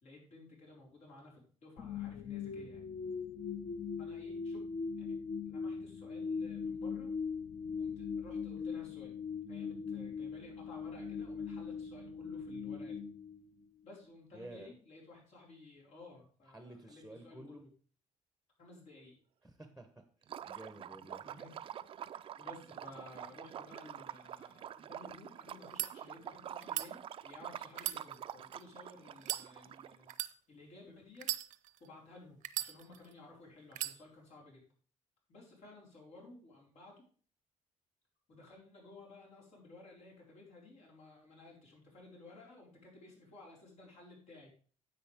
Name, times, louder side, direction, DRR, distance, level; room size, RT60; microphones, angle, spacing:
voice 1, 0.0-2.9 4.0-4.6 5.0-5.2 5.5-7.1 7.8-9.1 9.5-13.0 13.8-17.7 18.6-19.2 21.2-21.6 22.1-30.2 30.5-31.3 31.8-34.6 35.3-37.0 38.3-44.5, left 2 dB, 65° left, -3 dB, 4.8 m, -55 dB
sound 1, 1.8-13.9, left 5 dB, 40° left, 0.8 m, -40 dB
voice 2, 14.3-14.7 16.5-17.6 19.4-20.0 20.5-21.2, right 1 dB, ahead, 7 dB, 0.9 m, -51 dB
Liquid, 20.2-30.1, right 10 dB, 45° right, 0.4 m, -47 dB
sound 2, 25.6-25.9 26.6-26.9 27.7-28.6 29.2-29.5 30.1-30.3 31.2-31.9 32.4-33.1 33.7-34.0, right 13 dB, 90° right, 0.7 m, -38 dB
10.5 x 8.1 x 3.5 m, 0.42 s
cardioid pair, 150°, 13 cm